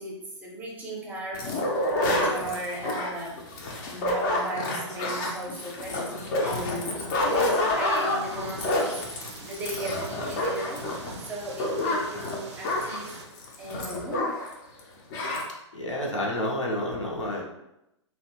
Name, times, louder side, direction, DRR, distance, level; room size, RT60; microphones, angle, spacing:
voice 1, 0.0-3.5 3.8-10.9 11.2-13.1 13.6-14.4, equal, 10° right, -2 dB, 0.6 m, -36 dB
sound 1, 1.3-14.5 14.8-14.9 15.1-15.5, left 1 dB, 40° left, 0.5 m, -28 dB
sound 2, 7.2-13.3, right 5 dB, 65° right, 0.4 m, -45 dB
voice 2, 15.7-17.4, left 1 dB, 80° left, -2 dB, 0.7 m, -29 dB
2.7 x 2.1 x 2.7 m, 0.87 s
figure-of-eight pair, 120°, 16 cm